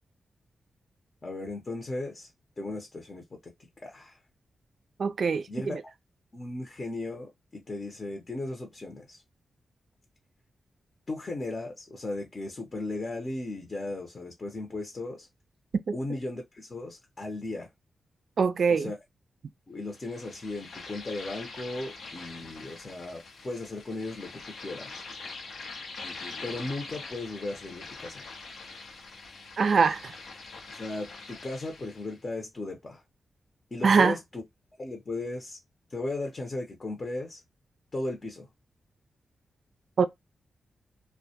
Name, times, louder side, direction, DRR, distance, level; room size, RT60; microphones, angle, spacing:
voice 1, 1.2-2.3 2.6-3.5 3.8-4.2 5.5-5.8 6.3-9.2 11.1-15.3 15.9-17.7 18.7-19.0 19.7-25.0 26.4-28.3 30.7-33.0 33.7-34.4 34.8-35.6 35.9-37.4 37.9-38.5, left 2 dB, 45° left, 0.7 m, -36 dB
voice 2, 5.0-5.8 15.9-16.0 18.4-18.9 29.6-30.2 33.8-34.2 40.0-40.1, right 5 dB, 65° right, 0.3 m, -23 dB
sound 1, 19.9-32.2, left 3 dB, 80° left, 0.6 m, -44 dB
2.1 x 2.1 x 2.7 m
cardioid pair, 60°, 0 cm